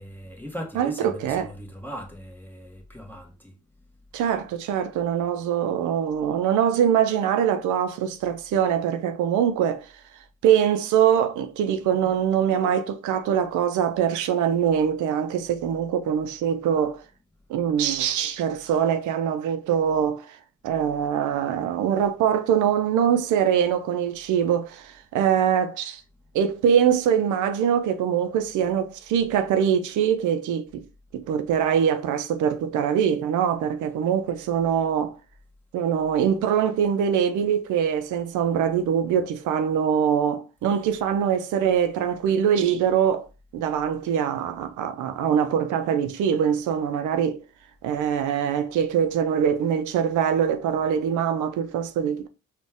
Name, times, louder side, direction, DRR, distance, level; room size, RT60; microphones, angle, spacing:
voice 1, 0.0-3.5, equal, 5° left, 1.2 m, -39 dB
voice 2, 0.7-1.5 4.1-9.9 10.4-17.0 17.5-20.4 20.6-26.0 26.3-30.8 31.1-35.1 35.7-43.3 43.5-47.4 47.8-52.3, right 8 dB, 80° right, 0.5 m, -23 dB
4.1 x 2.3 x 3.5 m
cardioid pair, 90°, 30 cm